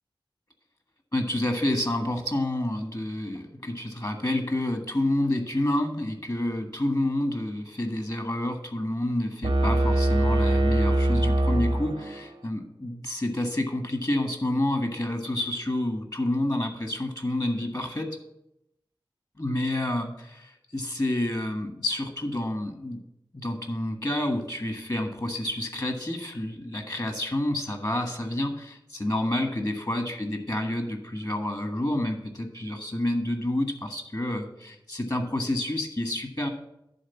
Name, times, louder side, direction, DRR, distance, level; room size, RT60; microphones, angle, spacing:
voice 1, 1.1-18.2 19.4-23.0 23.3-36.5, left 1 dB, 45° left, 5 dB, 1.5 m, -29 dB
sound 1, 9.4-12.4, right 1 dB, 85° right, 0.8 m, -23 dB
11.0 x 3.7 x 7.1 m, 0.83 s
wide cardioid pair, 50°, 9 cm